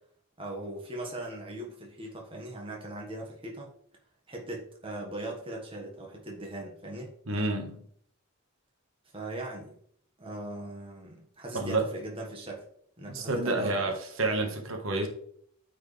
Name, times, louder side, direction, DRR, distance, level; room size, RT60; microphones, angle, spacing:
voice 1, 0.4-3.7 4.3-7.1 9.1-9.7 10.2-12.6 13.0-13.8, right 1 dB, 25° right, 1.4 m, -39 dB
voice 2, 7.3-7.8 11.5-11.8 13.1-13.9 14.2-15.1, right 2 dB, 80° right, 1.4 m, -29 dB
9.0 x 4.7 x 3.3 m
head